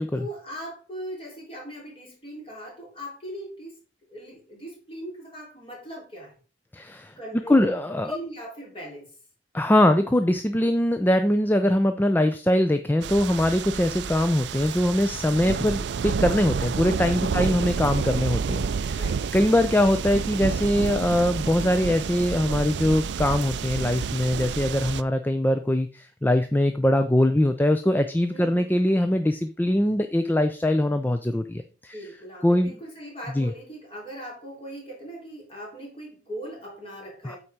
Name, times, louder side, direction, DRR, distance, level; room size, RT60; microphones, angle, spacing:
voice 1, 0.0-3.8 4.1-6.3 7.2-9.1 18.9-19.3 28.3-28.8 31.6-37.4, equal, 30° left, -2 dB, 3.3 m, -40 dB
voice 2, 6.7-7.1 7.5-8.2 9.5-19.0 19.3-31.9 32.4-32.8 33.3-33.5 37.2-37.3, left 1 dB, 10° left, 8 dB, 0.4 m, -22 dB
sound 1, 13.0-25.0, right 6 dB, 65° right, 0.4 m, -29 dB
8.9 x 4.2 x 5.0 m, 0.37 s
head